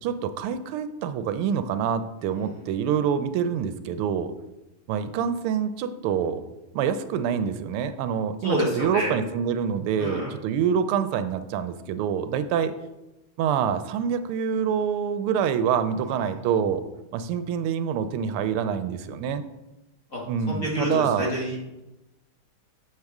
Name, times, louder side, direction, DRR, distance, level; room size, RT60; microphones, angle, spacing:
voice 1, 0.0-4.3 4.9-6.4 6.7-12.7 13.4-16.8 17.1-19.4 20.3-21.3, right 8 dB, 85° right, 11 dB, 1.5 m, -26 dB
voice 2, 8.4-9.1 10.0-10.3 20.1-20.2 20.5-21.8, equal, 40° left, -4 dB, 1.9 m, -28 dB
7.5 x 6.5 x 3.5 m, 0.98 s
omnidirectional pair, 2.4 m